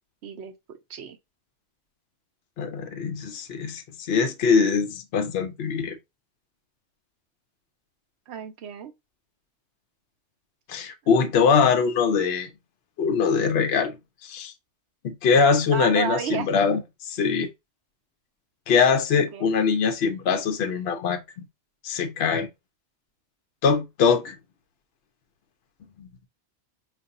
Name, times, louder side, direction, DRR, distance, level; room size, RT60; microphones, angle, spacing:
voice 1, 0.2-1.2 8.3-8.9 11.1-11.3 11.6-11.7 15.7-16.5 19.1-19.5, right 9 dB, 70° right, 0.9 m, -33 dB
voice 2, 2.6-3.8 4.1-5.9 10.7-12.5 13.0-13.9 14.3-14.5 15.0-16.8 17.1-17.5 18.7-21.4 21.8-22.5 23.6-24.3 26.0-26.1, left 5 dB, 65° left, 0.8 m, -22 dB
4.7 x 2.6 x 2.5 m
omnidirectional pair, 1.2 m